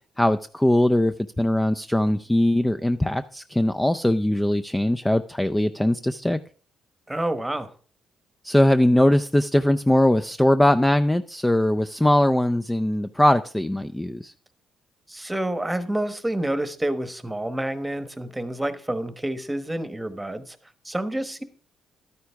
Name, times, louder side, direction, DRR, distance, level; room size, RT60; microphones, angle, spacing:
voice 1, 0.2-6.4 8.4-14.3, left 1 dB, 10° left, 0.4 m, -21 dB
voice 2, 7.1-7.7 15.1-20.6 20.8-21.4, right 1 dB, 10° right, 1.1 m, -28 dB
12.0 x 9.5 x 3.5 m
cardioid pair, 90°, 0 cm